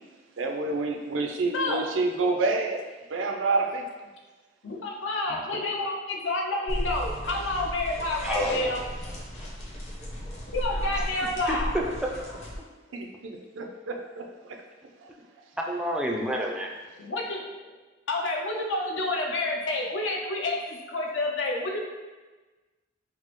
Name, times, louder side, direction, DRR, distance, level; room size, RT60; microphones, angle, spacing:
voice 1, 0.4-2.8 3.1-3.9 12.9-14.6, right 3 dB, 80° right, 3 dB, 0.5 m, -28 dB
voice 2, 4.6-8.8 10.5-11.7 17.0-17.7 18.1-21.8, left 2 dB, 75° left, 0 dB, 0.6 m, -29 dB
voice 3, 5.3-5.6 8.2-8.8 11.5-11.6 15.6-16.7, equal, 5° right, 0 dB, 0.3 m, -30 dB
sound 1, 6.7-12.6, equal, 35° left, 0.7 m, -35 dB
4.6 x 2.0 x 3.0 m, 1.2 s
head